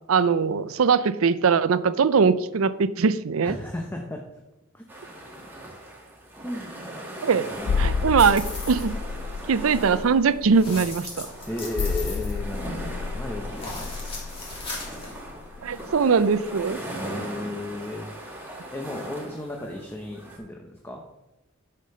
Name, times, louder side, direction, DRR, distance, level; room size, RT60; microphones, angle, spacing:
voice 1, 0.1-3.6 7.2-7.5 7.8-8.9 9.5-11.3 15.6-16.8, right 5 dB, 80° right, 16 dB, 0.5 m, -21 dB
voice 2, 3.4-4.2 4.7-4.8 6.4-6.7 7.5-8.1 11.5-14.4 16.9-18.1 18.7-21.1, left 1 dB, 10° left, 1 dB, 0.9 m, -35 dB
sound 1, 4.9-20.4, right 1 dB, 10° right, 2.0 m, -39 dB
sound 2, 7.6-16.0 16.3-16.5, left 5 dB, 65° left, 0.4 m, -31 dB
sound 3, 8.2-8.9 10.5-12.9 13.5-15.1, left 3 dB, 25° left, 2.8 m, -37 dB
10.0 x 6.7 x 5.4 m, 0.99 s
head